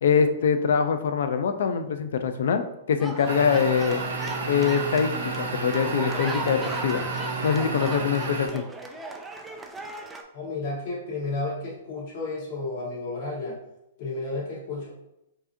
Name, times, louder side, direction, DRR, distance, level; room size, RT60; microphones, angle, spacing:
voice 1, 0.0-4.1 4.5-5.1 5.4-7.0 7.4-8.6, left 6 dB, 70° left, 8 dB, 0.4 m, -24 dB
sound 1, 3.0-10.2, right 3 dB, 5° right, 0.3 m, -37 dB
sound 2, 3.3-8.5, right 3 dB, 85° right, 0.8 m, -31 dB
voice 2, 10.3-13.6 14.0-14.9, left 3 dB, 45° left, -4 dB, 1.5 m, -32 dB
4.6 x 2.8 x 2.6 m, 0.85 s
hypercardioid pair, 160°, 0 cm